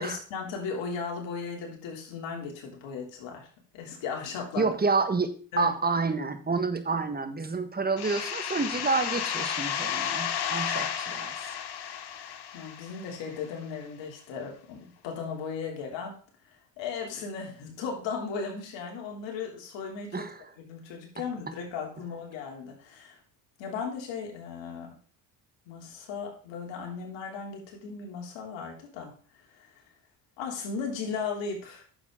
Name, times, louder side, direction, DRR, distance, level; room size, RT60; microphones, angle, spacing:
voice 1, 0.0-3.5 3.7-4.7 5.5-5.7 12.5-16.1 16.8-20.3 20.6-23.2 23.6-24.9 25.7-29.1 29.6-29.7 30.4-31.8, left 5 dB, 80° left, 1 dB, 3.2 m, -36 dB
voice 2, 4.6-11.3 20.1-20.5, right 4 dB, 20° right, 9 dB, 1.5 m, -29 dB
sound 1, 8.0-13.4, left 9 dB, 60° left, 1.3 m, -33 dB
9.7 x 7.1 x 3.8 m, 0.42 s
supercardioid pair, 75°, 44 cm